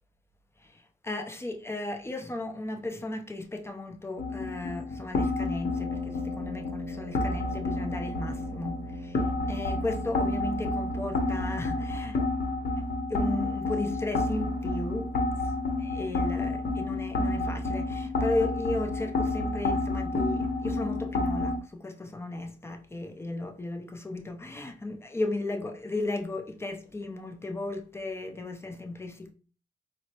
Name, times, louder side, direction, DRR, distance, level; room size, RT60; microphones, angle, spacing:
voice 1, 0.6-12.2 13.1-15.1 15.8-29.3, left 2 dB, 15° left, 0.5 m, -35 dB
sound 1, 4.2-21.6, left 2 dB, 45° left, 0.9 m, -30 dB
Brass instrument, 5.6-11.5, equal, 40° right, 0.8 m, -45 dB
4.2 x 2.0 x 2.8 m
cardioid pair, 90°, 20 cm